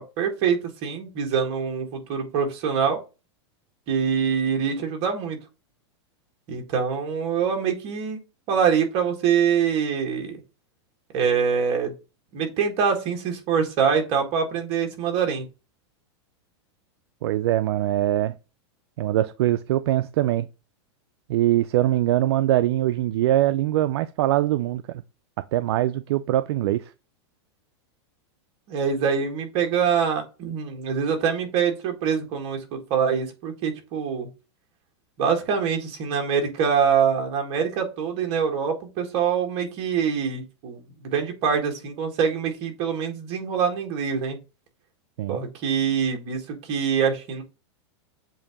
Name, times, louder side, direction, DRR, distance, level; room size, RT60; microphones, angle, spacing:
voice 1, 0.0-3.0 3.9-5.4 6.5-8.2 8.5-10.3 11.1-11.9 12.3-15.5 28.7-34.3 35.2-44.4 45.3-47.4, right 7 dB, 40° right, 1.7 m, -24 dB
voice 2, 17.2-18.3 19.0-20.5 21.3-25.0 25.5-26.9 45.2-45.4, right 13 dB, 65° right, 0.4 m, -22 dB
7.5 x 2.7 x 5.0 m
supercardioid pair, 160°, 15 cm